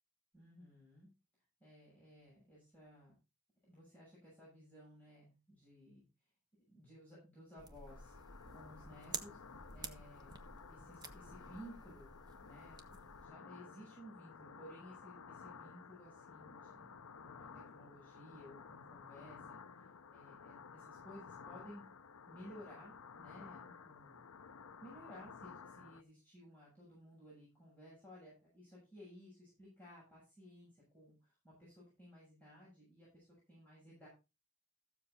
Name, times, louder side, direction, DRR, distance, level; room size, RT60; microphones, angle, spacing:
voice 1, 0.3-1.1 1.6-3.1 3.6-6.0 6.7-9.4 9.7-10.4 10.7-12.8 13.2-21.9 22.3-24.2 24.8-34.1, equal, 10° left, -8 dB, 7.2 m, -57 dB
sound 1, 7.6-13.3, right 4 dB, 20° right, 1.2 m, -51 dB
sound 2, 7.9-26.0, left 6 dB, 80° left, 0.7 m, -55 dB
14.5 x 7.4 x 4.0 m, 0.29 s
head